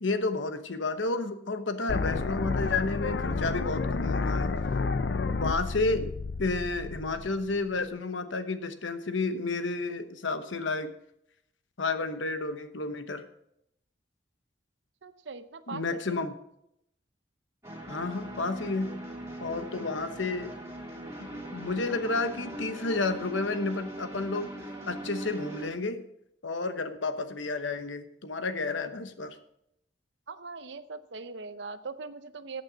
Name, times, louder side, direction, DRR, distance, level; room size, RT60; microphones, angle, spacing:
voice 1, 0.0-4.5 5.3-6.1 6.4-10.9 11.8-13.2 15.7-16.3 17.9-19.0 19.4-20.5 21.2-24.5 24.9-26.0 26.4-29.4, left 3 dB, 85° left, 9 dB, 1.0 m, -31 dB
sound 1, 1.9-7.9, left 4 dB, 65° left, 0.6 m, -30 dB
voice 2, 15.0-16.0 28.8-28.9 30.3-32.6, right 4 dB, 70° right, 12 dB, 0.7 m, -41 dB
sound 2, 17.6-25.7, right 1 dB, 15° right, 2.9 m, -41 dB
14.0 x 8.8 x 4.0 m, 0.76 s
head